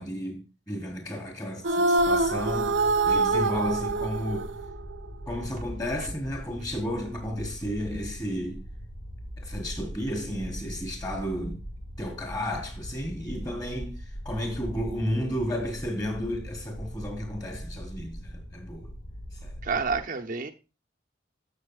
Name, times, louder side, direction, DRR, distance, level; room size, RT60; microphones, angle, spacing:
voice 1, 0.0-4.5 5.3-8.6 9.4-11.6 12.0-14.0 14.2-18.9 19.4-19.6, equal, 20° left, 4.3 m, -33 dB
sound 1, 1.6-5.1, right 2 dB, 90° right, 0.9 m, -25 dB
sound 2, 2.0-20.0, equal, 60° left, 1.9 m, -40 dB
voice 2, 19.6-20.5, right 5 dB, 45° right, 1.0 m, -29 dB
14.0 x 7.3 x 2.4 m
head